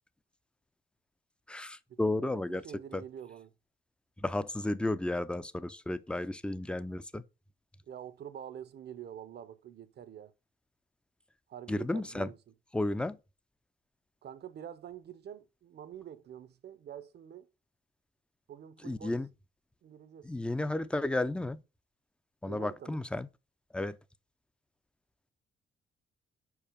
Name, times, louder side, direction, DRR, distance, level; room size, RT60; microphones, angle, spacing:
voice 1, 1.5-2.6 2.9-3.0 4.2-7.2 11.7-12.3 12.7-13.2 18.8-19.3 20.2-21.6 22.4-23.3 23.7-24.0, left 2 dB, 5° left, 0.4 m, -33 dB
voice 2, 2.5-3.5 7.9-10.3 11.5-12.4 14.2-17.5 18.5-19.1 19.8-20.3 22.5-23.0, right 9 dB, 55° right, 0.7 m, -46 dB
4.9 x 4.8 x 5.0 m
cardioid pair, 90°, 20 cm